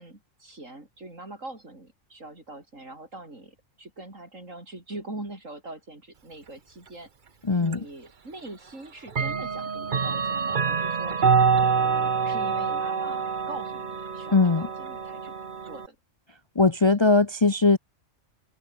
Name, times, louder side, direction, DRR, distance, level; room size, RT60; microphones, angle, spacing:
voice 1, 0.0-7.1 7.6-11.2 11.6-15.3 15.6-16.0, right 2 dB, 75° right, 6.4 m, -42 dB
voice 2, 7.5-7.8 14.3-14.7 16.6-17.8, left 3 dB, 25° left, 0.7 m, -20 dB
Clock, 7.7-7.8 9.1-15.9, right 5 dB, 40° right, 1.2 m, -26 dB
open air
omnidirectional pair, 1.4 m